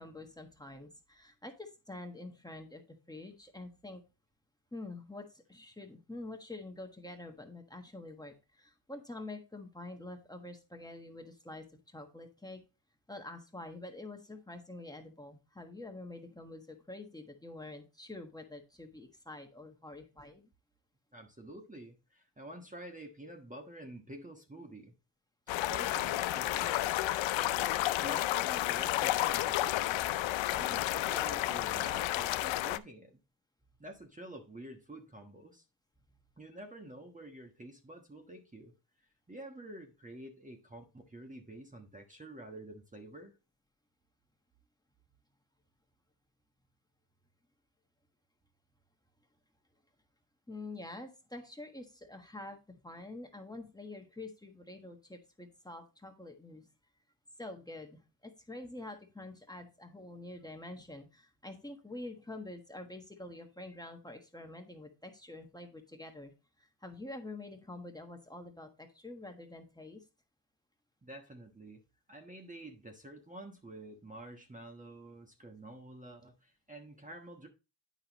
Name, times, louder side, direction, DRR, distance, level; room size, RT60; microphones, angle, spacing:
voice 1, 0.0-4.0 4.7-12.6 13.1-20.5 50.5-52.6 52.8-56.7 57.4-66.3 66.6-70.0, left 2 dB, 10° left, 1.3 m, -47 dB
voice 2, 21.1-24.9 25.7-26.9 27.3-30.1 30.4-33.2 33.8-35.6 36.4-38.7 39.3-43.3 71.0-71.8 72.1-77.5, right 1 dB, 15° right, 1.2 m, -48 dB
sound 1, 25.5-32.8, left 15 dB, 75° left, 0.6 m, -31 dB
8.9 x 5.7 x 3.0 m
cardioid pair, 85°, 46 cm